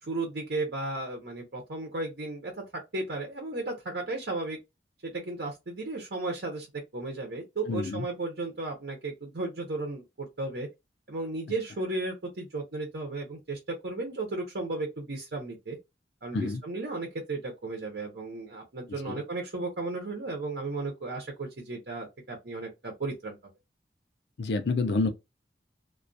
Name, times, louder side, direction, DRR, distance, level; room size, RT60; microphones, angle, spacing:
voice 1, 0.0-2.6 2.9-4.6 5.0-6.7 6.9-10.7 11.1-15.8 16.2-23.4, right 2 dB, 70° right, 0.8 m, -34 dB
voice 2, 7.7-8.1 16.3-16.6 19.1-19.2 24.4-25.1, left 3 dB, 75° left, 0.4 m, -28 dB
2.3 x 2.3 x 2.5 m
head